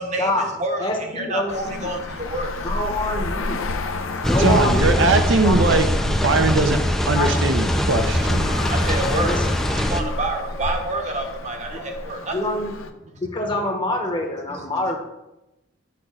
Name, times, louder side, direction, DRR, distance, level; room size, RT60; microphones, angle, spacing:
voice 1, 0.0-2.7 3.6-4.3 8.1-8.2 8.5-12.4 13.5-13.6 14.5-15.0, right 2 dB, 35° right, 3 dB, 0.9 m, -29 dB
voice 2, 0.8-1.9 2.6-3.6 4.3-5.0 5.4-6.3 6.8-6.9 7.1-7.4 9.1-9.4 11.7-11.8 12.3-12.7 13.2-15.0, left 1 dB, 25° left, 2 dB, 0.9 m, -26 dB
Traffic noise roadway noise, 1.5-12.9, left 2 dB, 80° left, 0.6 m, -31 dB
sound 1, 4.2-10.0, equal, ahead, 0.4 m, -22 dB
voice 3, 4.4-6.8 7.1-8.5, right 3 dB, 65° right, 7 dB, 0.6 m, -21 dB
8.4 x 3.0 x 6.4 m, 0.95 s
head